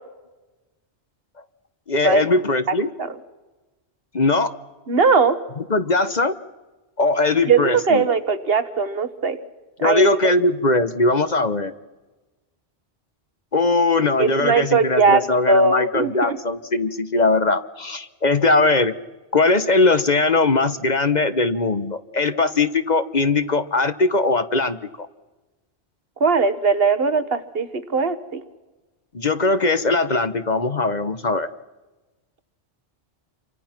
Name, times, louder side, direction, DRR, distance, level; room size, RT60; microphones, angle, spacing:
voice 1, 1.9-2.9 4.1-4.5 5.7-6.4 7.0-8.0 9.8-11.7 13.5-18.9 19.3-25.1 29.1-31.5, left 3 dB, 40° left, 11 dB, 1.1 m, -20 dB
voice 2, 4.9-5.4 7.5-9.4 9.8-10.3 14.2-16.4 26.2-28.4, right 4 dB, 60° right, 11 dB, 1.5 m, -19 dB
28.5 x 24.5 x 6.0 m, 1.2 s
omnidirectional pair, 1.1 m